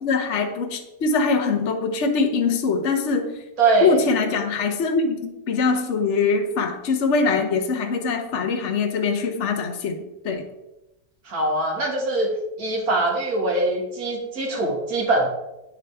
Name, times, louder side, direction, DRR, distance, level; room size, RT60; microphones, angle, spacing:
voice 1, 0.0-3.3 3.8-10.0 10.2-10.5, left 4 dB, 50° left, 4 dB, 1.2 m, -23 dB
voice 2, 3.6-3.9 11.3-12.3 12.6-15.3, right 2 dB, 60° right, -1 dB, 2.2 m, -22 dB
8.9 x 7.7 x 3.4 m, 0.95 s
omnidirectional pair, 1.8 m